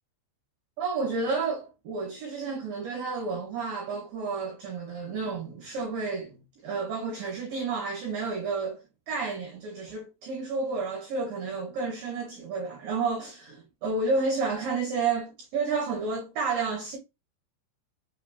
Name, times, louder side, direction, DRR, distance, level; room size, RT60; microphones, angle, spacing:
voice 1, 0.8-6.4 6.6-17.0, right 4 dB, 90° right, 1.9 m, -31 dB
7.5 x 2.6 x 2.7 m
omnidirectional pair, 5.3 m